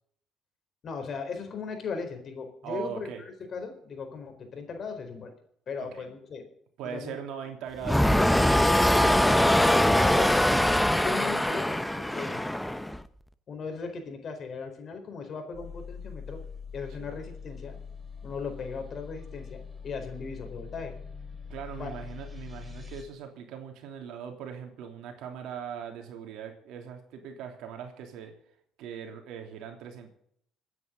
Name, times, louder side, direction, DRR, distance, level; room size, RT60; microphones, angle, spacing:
voice 1, 0.8-5.3 5.7-6.4 6.8-7.2 8.9-12.4 13.5-16.4 16.7-17.8 18.2-20.9 21.8-21.9, left 5 dB, 50° left, 5 dB, 4.3 m, -38 dB
voice 2, 2.6-3.2 5.9-6.0 6.8-8.5 17.0-17.1 21.5-28.3 28.8-30.1, right 8 dB, 75° right, 4 dB, 3.1 m, -40 dB
sound 1, 7.8-13.0, left 1 dB, 5° left, 0.9 m, -22 dB
sound 2, 15.5-23.0, left 6 dB, 10° right, 5.6 m, -43 dB
26.5 x 9.6 x 3.9 m, 0.69 s
supercardioid pair, 65°, 0 cm